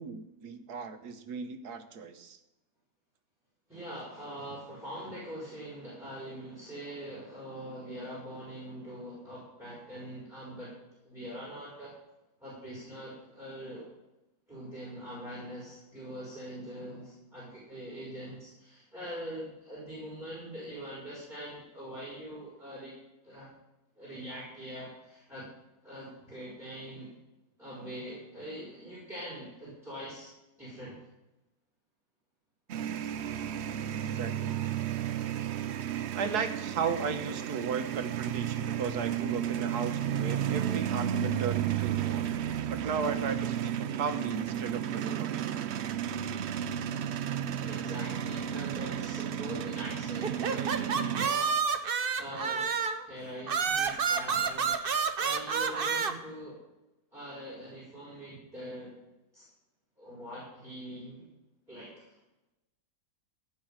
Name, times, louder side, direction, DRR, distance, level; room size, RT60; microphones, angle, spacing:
voice 1, 0.0-2.4 34.1-34.6 36.1-42.3 42.7-45.4, right 5 dB, 85° right, 8 dB, 1.7 m, -35 dB
voice 2, 3.7-10.7 11.0-11.9 12.4-13.9 14.5-22.9 23.2-23.5 24.0-25.5 25.8-27.1 27.6-30.3 30.6-31.0 47.6-51.7 52.2-56.6 57.1-58.9 59.3-59.4 60.0-61.3 61.7-62.2, equal, ahead, -7 dB, 5.1 m, -43 dB
sound 1, 32.7-51.3, right 10 dB, 60° right, 0.7 m, -33 dB
sound 2, 50.2-53.1 53.5-56.1, right 6 dB, 40° right, 1.0 m, -29 dB
16.5 x 5.4 x 8.9 m, 0.96 s
omnidirectional pair, 1.6 m